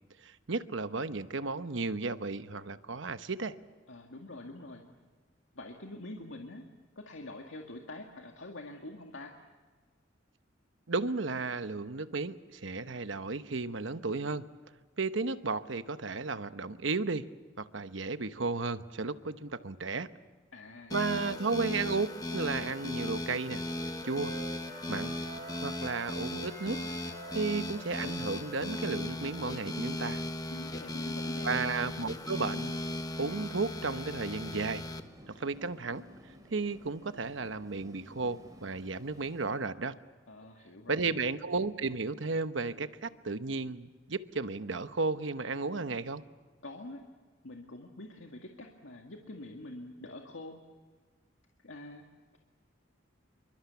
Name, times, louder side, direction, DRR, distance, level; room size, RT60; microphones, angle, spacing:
voice 1, 0.2-3.6 10.9-14.5 15.0-17.2 17.6-20.1 20.9-23.6 24.0-24.3 24.9-25.2 25.6-26.8 27.3-30.2 31.4-32.7 33.2-34.9 35.4-36.0 36.5-39.9 40.9-46.2, right 4 dB, 75° right, 11 dB, 1.0 m, -34 dB
voice 2, 3.9-4.9 5.5-6.7 7.0-9.3 20.5-21.5 30.5-31.6 40.3-41.1 46.6-47.0 47.4-50.6 51.6-52.0, left 2 dB, 90° left, 2 dB, 2.0 m, -46 dB
sound 1, 20.9-35.0, left 1 dB, 20° left, 1.3 m, -37 dB
Wind instrument woodwind instrument, 22.8-26.1 26.4-30.9, right 2 dB, 40° right, 7.2 m, -50 dB
Train, 26.8-39.5, equal, 20° right, 4.8 m, -58 dB
27.5 x 24.0 x 7.0 m, 1.4 s
head